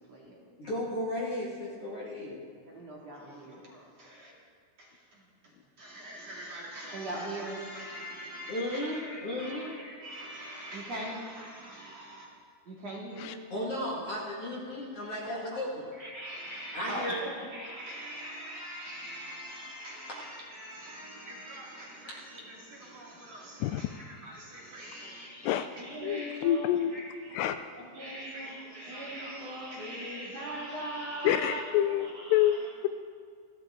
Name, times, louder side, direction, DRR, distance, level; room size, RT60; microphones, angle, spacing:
voice 1, 0.6-2.4 8.5-9.7 13.5-15.9 16.7-17.2 20.1-20.2, left 1 dB, 45° left, -5 dB, 2.3 m, -35 dB
voice 2, 2.7-4.3 4.8-4.9 5.8-12.3 12.7-13.3 15.2-15.6 16.0-27.4 27.8-32.6, right 1 dB, 45° right, -4 dB, 3.0 m, -41 dB
voice 3, 23.6-23.9 25.4-25.7 26.0-27.0 27.3-27.7 31.2-32.9, left 11 dB, 80° left, 10 dB, 2.6 m, -28 dB
29.0 x 12.5 x 3.8 m, 2.1 s
omnidirectional pair, 5.0 m